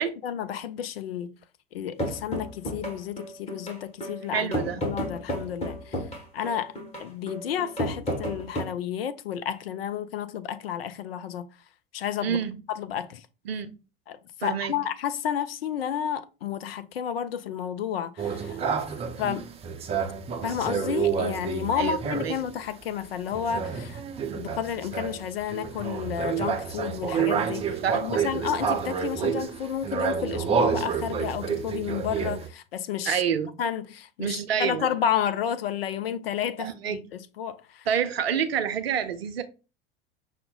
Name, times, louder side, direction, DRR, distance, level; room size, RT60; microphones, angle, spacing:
voice 1, 0.2-1.3 1.7-4.6 4.8-6.1 6.3-11.5 11.9-12.4 12.7-13.3 14.1-18.6 19.2-19.5 20.4-24.0 24.4-33.2 33.6-37.9, left 9 dB, 65° left, 0.5 m, -31 dB
sound 1, 2.0-8.6, equal, 20° left, 1.5 m, -32 dB
voice 2, 4.3-4.8 12.2-12.6 13.5-13.7 14.4-14.7 21.8-22.0 22.2-22.3 27.8-28.2 33.1-33.5 34.2-34.9 36.6-37.0 37.9-39.4, right 8 dB, 70° right, 0.6 m, -27 dB
sound 2, 18.2-22.5 23.3-32.5, right 7 dB, 20° right, 0.5 m, -29 dB
5.5 x 2.1 x 3.8 m
figure-of-eight pair, 75°, 32 cm